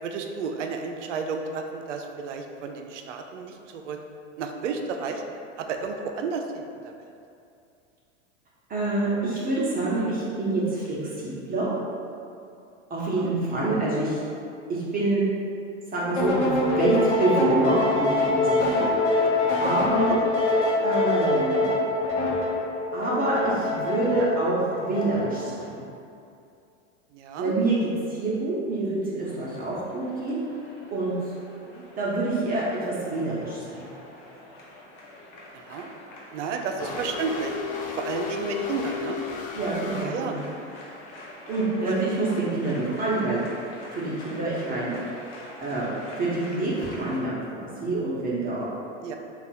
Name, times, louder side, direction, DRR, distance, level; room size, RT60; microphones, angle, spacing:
voice 1, 0.0-4.0 4.4-5.2 5.6-6.9 13.0-13.3 19.2-19.5 19.8-20.3 27.1-27.6 31.7-31.9 35.5-35.9 36.3-37.5 37.9-39.2 40.0-40.4 41.8-42.0 49.0-49.2, right 5 dB, 70° right, 4 dB, 0.5 m, -32 dB
voice 2, 8.7-11.7 12.9-14.2 14.7-15.2 15.9-18.9 19.6-20.1 20.8-21.8 22.9-25.8 27.4-30.4 30.9-31.1 32.0-33.9 39.5-40.4 41.5-43.4 43.9-45.0 45.6-45.9 46.2-48.7, right 2 dB, 25° right, -7 dB, 0.9 m, -26 dB
sound 1, 16.2-25.6, left 2 dB, 70° left, 0.8 m, -24 dB
sound 2, 29.2-47.2, left 1 dB, 45° left, 0.9 m, -45 dB
sound 3, 36.8-40.0, left 6 dB, 25° left, 0.3 m, -34 dB
3.5 x 2.4 x 4.1 m, 2.5 s
hypercardioid pair, 95°, 37 cm